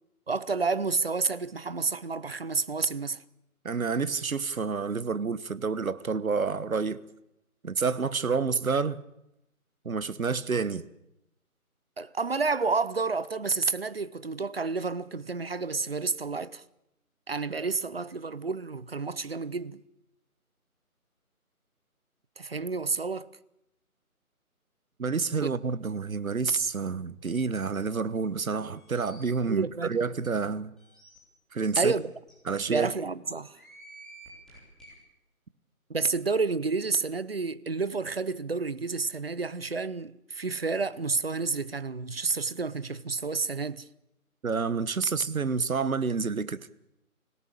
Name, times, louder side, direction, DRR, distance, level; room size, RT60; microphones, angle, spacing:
voice 1, 0.3-3.2 12.0-16.6 17.3-19.8 22.4-23.3 25.4-25.5 29.5-29.9 31.8-32.1 32.7-33.6 35.9-43.9, right 4 dB, 40° right, 0.8 m, -30 dB
voice 2, 3.6-7.0 7.6-9.0 9.8-10.8 25.0-30.7 31.5-31.9 32.5-32.9 44.4-46.6, right 5 dB, 65° right, 1.3 m, -29 dB
sound 1, 28.7-29.2 29.8-29.9 30.2-30.3 30.8-31.2 31.9-32.0 32.3-32.4 33.4-34.9, right 2 dB, ahead, 3.5 m, -51 dB
25.5 x 17.0 x 8.6 m
figure-of-eight pair, 165°, 44 cm